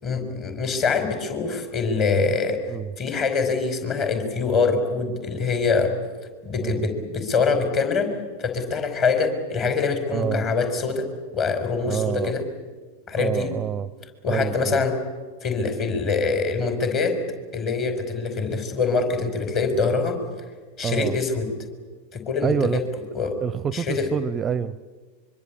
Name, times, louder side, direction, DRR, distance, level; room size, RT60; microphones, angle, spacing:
voice 1, 0.0-2.6 3.0-5.9 6.4-8.1 8.4-11.1 11.3-12.4 13.1-13.5 14.2-14.9 15.4-17.2 17.5-20.2 20.8-21.5 22.1-22.8 23.1-23.4 23.7-24.1, left 4 dB, 30° left, 7 dB, 5.0 m, -24 dB
voice 2, 10.1-10.5 11.9-12.4 13.2-13.9 14.3-14.9 20.8-21.2 22.4-22.8 23.4-24.9, right 8 dB, 25° right, 20 dB, 0.7 m, -27 dB
25.0 x 24.0 x 8.6 m, 1.4 s
figure-of-eight pair, 90°, 0 cm